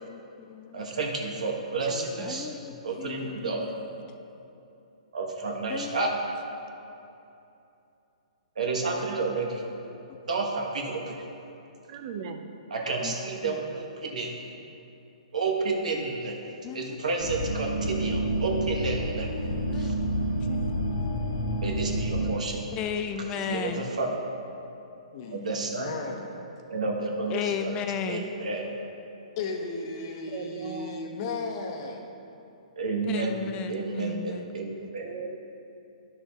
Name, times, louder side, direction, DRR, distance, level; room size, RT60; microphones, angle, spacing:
voice 1, 0.0-0.8 2.2-2.7 3.0-3.9 5.7-6.0 13.0-13.2 13.4-13.6 16.6-17.0 19.7-19.9 20.4-21.1 22.8-23.9 27.3-28.3 33.1-34.5, left 8 dB, 25° left, 7 dB, 0.4 m, -35 dB
voice 2, 0.7-2.5 2.8-3.6 5.1-6.2 8.5-9.6 10.2-11.3 12.7-14.6 15.3-19.3 19.8-19.9 21.6-22.7 23.3-24.2 25.3-25.9 26.7-27.8 28.1-28.8 32.8-33.4 33.7-35.1, right 3 dB, 80° right, 0 dB, 1.4 m, -31 dB
voice 3, 1.9-2.6 11.9-12.6 25.8-26.4 30.3-31.2 35.0-35.4, right 6 dB, 45° right, 6 dB, 0.6 m, -40 dB
sound 1, 17.2-22.3, right 1 dB, 60° left, 1.4 m, -29 dB
voice 4, 25.1-26.3 29.4-32.0, left 3 dB, 40° left, 3 dB, 1.1 m, -35 dB
11.0 x 6.4 x 3.7 m, 2.8 s
hypercardioid pair, 135°, 4 cm